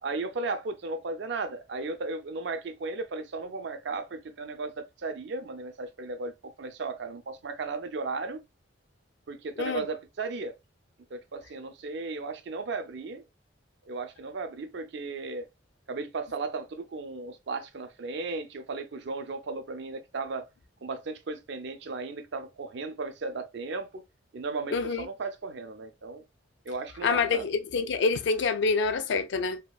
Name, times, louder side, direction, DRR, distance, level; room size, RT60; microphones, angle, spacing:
voice 1, 0.0-8.4 9.3-10.6 11.1-13.2 13.9-15.5 15.9-20.5 20.8-24.0 24.3-26.2 26.7-27.5, right 3 dB, 60° right, 0.4 m, -35 dB
voice 2, 24.7-25.0 27.0-29.6, left 4 dB, 65° left, 0.4 m, -26 dB
2.8 x 2.2 x 2.2 m
head